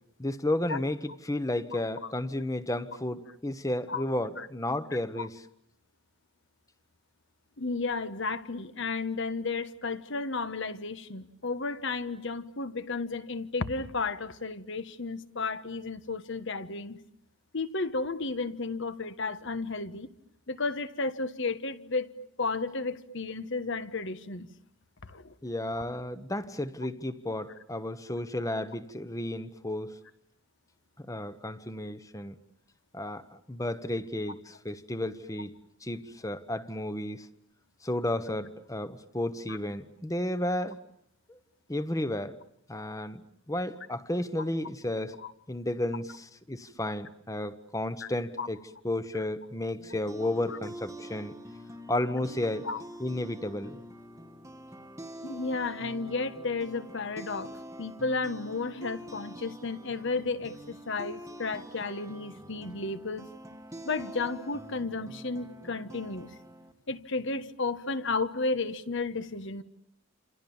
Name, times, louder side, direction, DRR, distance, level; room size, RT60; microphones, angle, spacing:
voice 1, 0.2-5.4 25.4-30.0 31.0-32.4 32.9-35.5 35.8-37.3 37.8-40.8 41.3-41.4 41.7-42.3 42.7-43.2 43.5-45.1 45.5-48.6 48.8-51.3 51.9-52.7 53.0-53.8, left 1 dB, 15° left, 13 dB, 1.2 m, -32 dB
voice 2, 7.6-17.0 17.5-20.1 20.5-22.1 22.4-24.5 25.0-25.3 39.5-39.6 45.2-45.3 48.0-48.1 48.4-48.5 50.5-50.6 52.6-52.8 55.2-57.5 57.8-63.3 63.8-66.3 66.9-69.6, left 3 dB, 60° left, 12 dB, 1.4 m, -33 dB
sound 1, 49.8-66.7, equal, 15° right, 1.5 m, -46 dB
29.0 x 27.5 x 7.2 m, 0.73 s
head